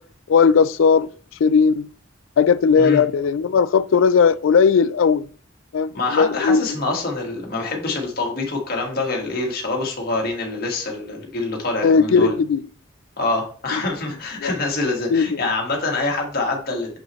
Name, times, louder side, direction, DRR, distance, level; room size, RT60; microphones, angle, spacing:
voice 1, 0.3-1.1 1.4-1.9 2.4-5.3 5.7-6.7 11.8-12.6 14.4-14.5 15.1-15.3, left 5 dB, 85° left, 0.4 m, -17 dB
voice 2, 5.9-12.3 13.2-17.0, left 3 dB, 50° left, 1.7 m, -25 dB
6.5 x 6.0 x 3.1 m
head